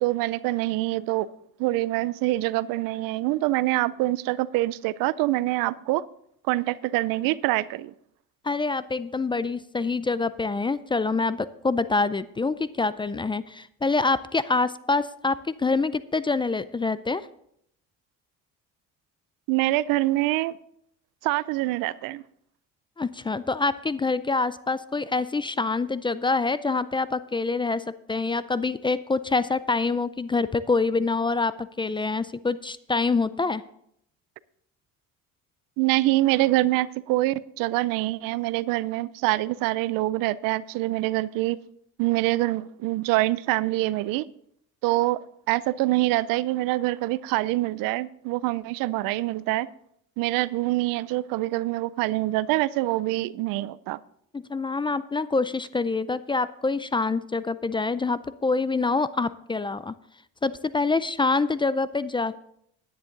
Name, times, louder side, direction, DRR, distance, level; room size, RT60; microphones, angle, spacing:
voice 1, 0.0-1.3 1.6-6.1 6.5-7.9 19.5-20.6 21.2-22.2 35.8-41.6 42.0-44.3 44.8-45.2 45.5-49.7 50.2-54.0, right 18 dB, 80° right, 0.5 m, -25 dB
voice 2, 8.4-17.2 23.0-33.6 54.3-59.9 60.4-62.4, left 3 dB, 15° left, 0.3 m, -26 dB
10.5 x 9.8 x 3.9 m
supercardioid pair, 90°, 34 cm